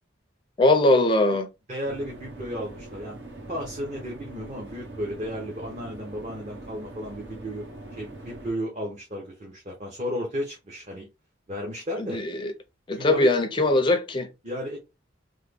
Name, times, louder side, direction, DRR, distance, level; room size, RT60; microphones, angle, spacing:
voice 1, 0.6-1.5 12.0-12.5 12.9-14.3, left 2 dB, 25° left, 0.4 m, -21 dB
voice 2, 1.7-3.2 3.5-11.1 11.5-12.2 12.9-13.3 14.4-14.8, equal, 35° right, 0.8 m, -34 dB
sound 1, 1.8-8.5, right 1 dB, 75° right, 1.3 m, -42 dB
3.3 x 2.1 x 3.3 m
head